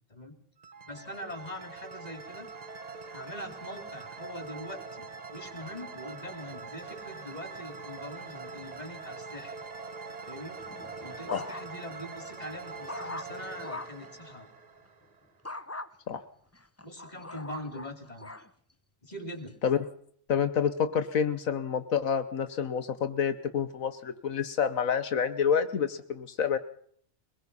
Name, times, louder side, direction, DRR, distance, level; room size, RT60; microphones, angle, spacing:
sound 1, 0.6-15.4, right 4 dB, 30° right, 1.0 m, -43 dB
voice 1, 0.8-2.5 3.1-9.6 10.2-10.6 11.0-14.5 16.8-18.3 19.0-19.5, left 1 dB, 30° left, 6 dB, 3.4 m, -43 dB
sound 2, 10.6-12.0 12.4-14.1 15.5-15.9 16.5-18.5 19.1-19.5, left 2 dB, 15° left, 0.8 m, -42 dB
voice 2, 20.3-26.6, left 7 dB, 80° left, 11 dB, 1.5 m, -28 dB
23.0 x 21.0 x 5.5 m, 0.64 s
omnidirectional pair, 1.4 m